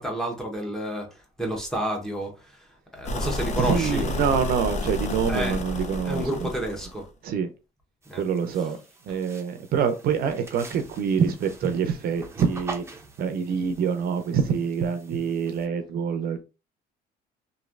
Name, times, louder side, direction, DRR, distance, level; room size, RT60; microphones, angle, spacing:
voice 1, 0.0-2.6 2.9-4.0 5.3-5.6 6.1-7.1 8.1-8.2, equal, 5° left, 1.0 m, -30 dB
sound 1, 3.0-7.0, left 1 dB, 45° left, 0.6 m, -30 dB
voice 2, 3.6-6.5 7.2-7.5 8.2-8.8 9.1-12.8 13.2-16.4, right 7 dB, 60° right, 0.6 m, -26 dB
sound 2, 8.0-15.7, right 3 dB, 15° right, 0.7 m, -43 dB
3.1 x 2.7 x 2.5 m
cardioid pair, 110°, 17 cm